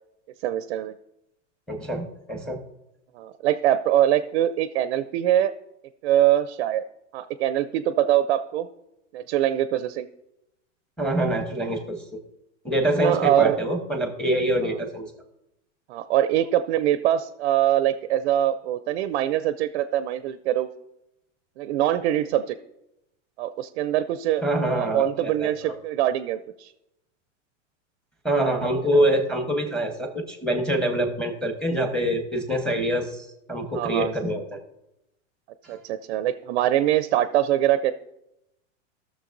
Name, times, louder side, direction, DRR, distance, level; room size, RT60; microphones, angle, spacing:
voice 1, 0.4-0.9 3.1-5.6 6.0-6.9 7.1-8.7 9.1-10.1 13.0-13.6 15.9-20.7 21.6-22.6 23.4-24.4 24.7-26.7 28.9-29.0 33.7-34.1 35.7-37.9, right 12 dB, 55° right, 12 dB, 0.5 m, -23 dB
voice 2, 1.7-2.6 11.0-12.0 12.6-15.1 24.4-25.7 28.2-34.6 35.6-35.8, right 1 dB, ahead, 5 dB, 1.0 m, -25 dB
15.5 x 6.6 x 2.6 m, 0.86 s
supercardioid pair, 140°, 37 cm